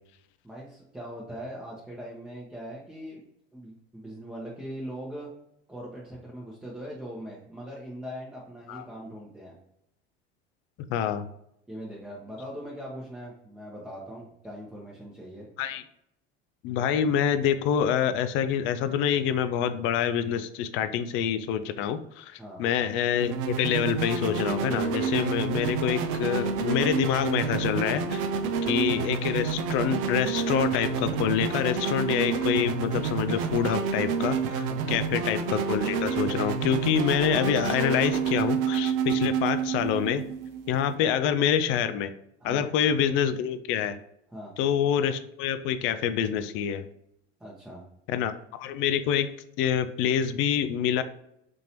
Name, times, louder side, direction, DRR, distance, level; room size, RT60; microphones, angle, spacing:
voice 1, 0.4-3.2 3.5-5.3 5.7-9.6 11.7-15.5 22.4-22.6 28.3-28.5 34.7-35.0 42.4-42.7 44.3-44.5 47.4-47.9, equal, 5° right, -5 dB, 0.8 m, -41 dB
voice 2, 10.9-11.3 15.6-15.8 16.6-28.2 28.6-40.2 40.7-42.1 42.4-44.0 44.6-46.8 48.1-48.3 48.6-49.3 49.6-51.0, left 8 dB, 40° left, 10 dB, 0.4 m, -26 dB
sound 1, 23.2-40.9, right 6 dB, 55° right, 0.6 m, -29 dB
4.3 x 2.9 x 2.9 m, 0.77 s
figure-of-eight pair, 70°, 34 cm